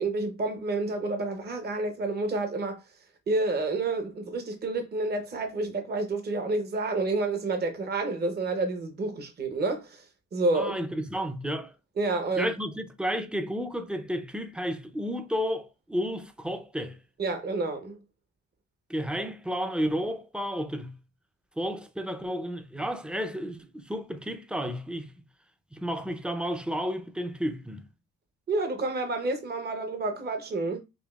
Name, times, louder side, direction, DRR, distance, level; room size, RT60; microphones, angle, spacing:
voice 1, 0.0-2.8 3.3-10.0 10.3-10.8 12.0-12.5 17.2-18.0 28.5-30.8, right 3 dB, 35° right, 0.8 m, -29 dB
voice 2, 10.5-11.7 12.4-17.0 18.9-20.9 21.6-25.1 25.7-27.9, equal, 5° right, 0.5 m, -32 dB
5.1 x 2.6 x 2.4 m
cardioid pair, 90°, 30 cm